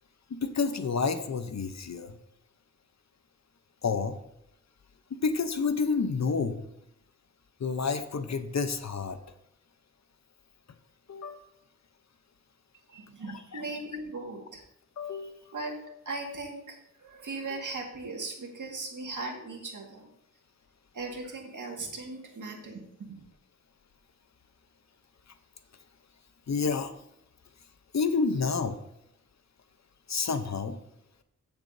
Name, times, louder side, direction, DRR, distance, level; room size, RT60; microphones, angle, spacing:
voice 1, 0.3-2.2 3.8-4.2 5.2-6.6 7.6-9.2 11.1-11.4 13.5-13.6 15.0-15.4 26.5-26.9 27.9-28.8 30.1-30.8, left 5 dB, 60° left, 9 dB, 0.9 m, -29 dB
voice 2, 12.9-14.6 15.2-15.8 16.1-20.1 20.9-23.3, right 3 dB, 75° right, 1 dB, 2.0 m, -38 dB
15.0 x 6.9 x 2.7 m, 0.77 s
wide cardioid pair, 105°, 31 cm